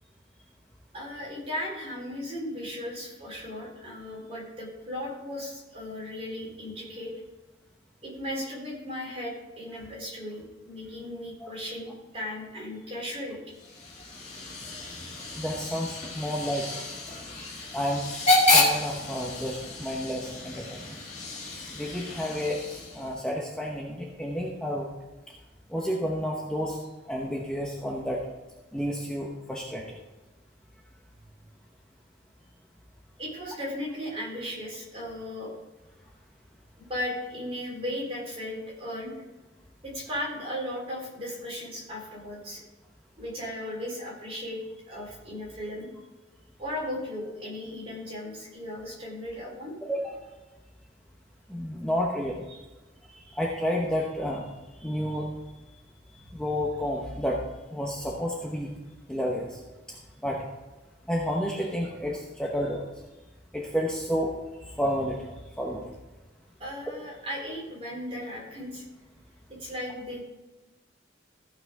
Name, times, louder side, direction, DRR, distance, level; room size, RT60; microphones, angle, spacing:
voice 1, 0.9-7.1 8.0-13.6 33.2-35.5 36.8-39.1 39.8-42.6 43.2-44.6 44.9-45.9 46.6-49.7 52.5-52.6 66.6-68.9 69.6-70.2, left 1 dB, 30° right, -4 dB, 3.7 m, -36 dB
Hiss / Train / Alarm, 13.5-23.2, left 2 dB, 35° left, 1.9 m, -29 dB
voice 2, 15.4-16.6 17.7-18.0 18.5-20.8 21.7-24.9 25.7-26.8 27.1-28.2 28.7-30.0 49.8-50.2 51.5-52.4 53.3-54.5 54.8-55.3 56.3-57.4 57.7-58.7 59.1-59.6 60.2-60.4 61.1-62.8 63.5-64.3 64.7-65.2 65.6-65.9, equal, 5° left, -3 dB, 1.0 m, -30 dB
14.5 x 5.9 x 4.8 m, 1.1 s
head